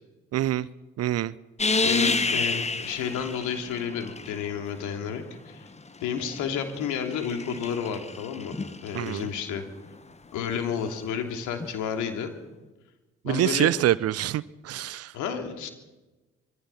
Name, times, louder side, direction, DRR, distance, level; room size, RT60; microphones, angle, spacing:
voice 1, 0.3-0.7 1.0-1.3 8.9-9.3 13.2-15.1, right 13 dB, 45° right, 21 dB, 0.7 m, -25 dB
sound 1, 1.6-4.7 5.8-9.2 11.6-11.7, left 4 dB, 20° left, 1.5 m, -30 dB
voice 2, 1.8-5.7 6.0-8.5 8.8-9.6 10.3-12.3 13.2-13.7 15.1-15.7, left 7 dB, 60° left, 6 dB, 2.9 m, -31 dB
25.5 x 22.5 x 5.7 m, 1.1 s
figure-of-eight pair, 45°, 33 cm